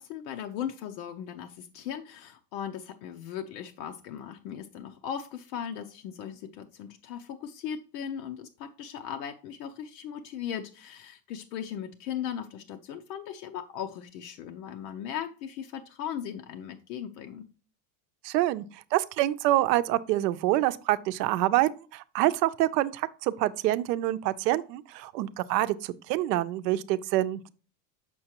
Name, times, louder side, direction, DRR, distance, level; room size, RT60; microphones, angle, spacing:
voice 1, 0.0-17.5, left 9 dB, 85° left, 0.8 m, -38 dB
voice 2, 18.2-18.6 18.9-27.4, right 15 dB, 90° right, 0.7 m, -26 dB
6.7 x 6.2 x 2.9 m
supercardioid pair, 145°, 48 cm